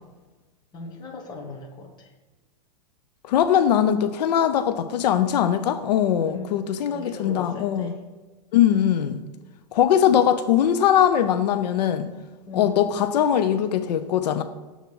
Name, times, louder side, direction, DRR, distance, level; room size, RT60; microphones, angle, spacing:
voice 1, 0.7-2.1 6.2-6.7 6.9-8.0 12.5-12.8, left 2 dB, 20° left, 0 dB, 1.2 m, -38 dB
voice 2, 3.3-7.9 8.5-9.2 9.7-12.1 12.5-14.4, left 9 dB, 75° left, 10 dB, 0.6 m, -21 dB
7.1 x 4.0 x 6.1 m, 1.3 s
supercardioid pair, 160°, 21 cm